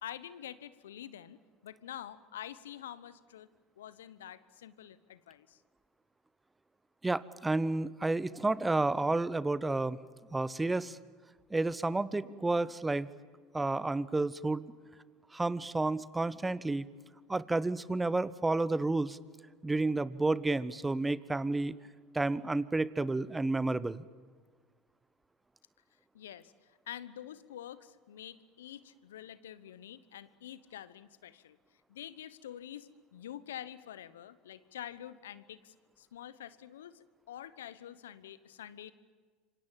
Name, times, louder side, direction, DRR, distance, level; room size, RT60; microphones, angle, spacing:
voice 1, 0.0-3.5 3.8-5.6 26.1-31.6 31.9-38.9, left 11 dB, 80° left, 16 dB, 1.0 m, -47 dB
voice 2, 7.0-10.0 10.3-11.0 11.5-13.1 13.5-14.6 15.3-16.9 17.3-19.2 19.6-21.8 22.1-24.0, right 2 dB, 15° right, 18 dB, 0.9 m, -31 dB
27.5 x 25.0 x 7.4 m, 1.5 s
hypercardioid pair, 75°, 0 cm